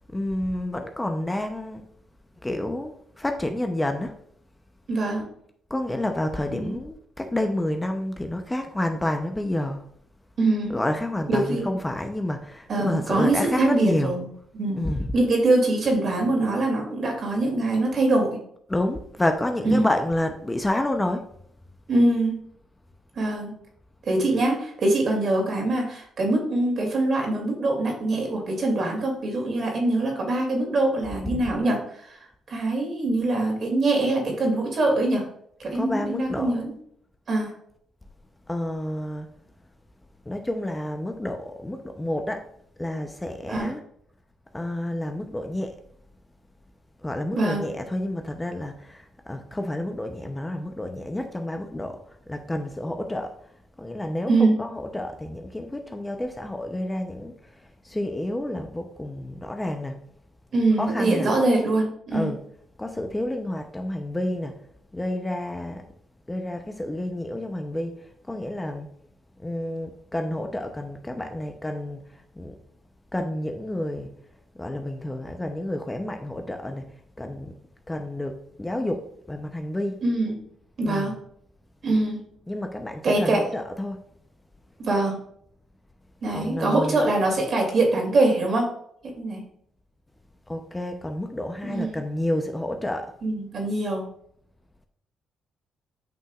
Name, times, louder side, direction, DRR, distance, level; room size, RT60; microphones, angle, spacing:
voice 1, 0.1-1.8 2.4-4.1 5.7-9.8 10.7-14.2 14.8-15.1 18.7-21.2 31.3-31.4 35.7-36.6 38.5-39.3 40.3-42.4 42.8-43.8 44.5-45.8 47.0-52.0 52.3-53.3 53.8-60.0 60.8-61.4 62.1-62.4 62.8-64.6 64.9-65.8 66.3-67.9 68.3-68.9 69.4-72.0 72.4-72.5 73.1-74.2 74.6-76.9 77.2-77.5 77.9-80.0 80.8-81.1 82.5-84.0 86.3-87.1 90.5-93.1, left 1 dB, 15° left, 0.7 m, -29 dB
voice 2, 4.9-5.3 6.5-6.7 10.4-10.8 11.3-11.7 12.7-14.3 14.5-14.8 15.1-18.4 19.6-19.9 21.9-22.4 23.2-23.5 24.1-32.2 32.5-35.2 35.6-36.7 37.3-37.5 43.5-43.7 47.3-47.6 54.3-54.5 60.5-62.3 80.0-80.4 80.8-81.2 81.8-82.2 83.0-83.4 84.8-85.2 86.2-88.7 89.2-89.4 91.6-92.0 93.2-94.0, right 2 dB, 50° right, 2.7 m, -23 dB
9.0 x 5.5 x 2.4 m
cardioid pair, 90°, 0 cm